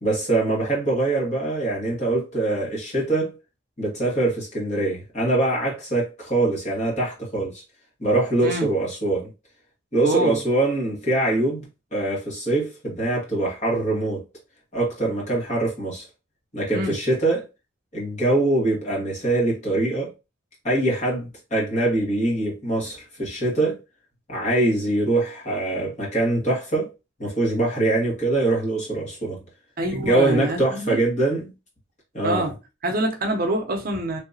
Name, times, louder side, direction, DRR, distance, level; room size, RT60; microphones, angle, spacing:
voice 1, 0.0-3.3 3.8-7.6 8.0-9.3 9.9-14.2 14.7-16.0 16.5-17.4 17.9-20.1 20.6-23.8 24.3-26.9 27.2-29.4 30.0-31.5 32.1-32.5, right 2 dB, 35° left, 1.6 m, -23 dB
voice 2, 8.4-8.7 10.0-10.4 16.7-17.0 29.8-31.0 32.2-32.6 32.8-34.2, right 1 dB, 50° right, 0.7 m, -25 dB
3.6 x 2.8 x 2.7 m
head